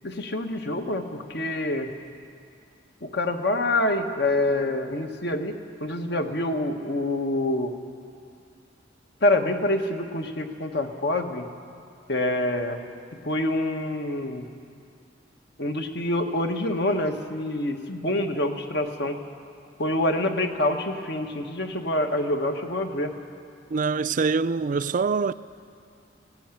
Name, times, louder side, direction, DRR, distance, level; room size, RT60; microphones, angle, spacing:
voice 1, 0.0-1.9 3.0-7.7 9.2-11.5 12.1-12.8 13.2-14.4 15.6-19.2 19.8-23.1, left 1 dB, 60° left, 1.4 m, -26 dB
voice 2, 23.7-25.3, right 4 dB, 45° right, 0.4 m, -24 dB
18.0 x 17.0 x 9.0 m
head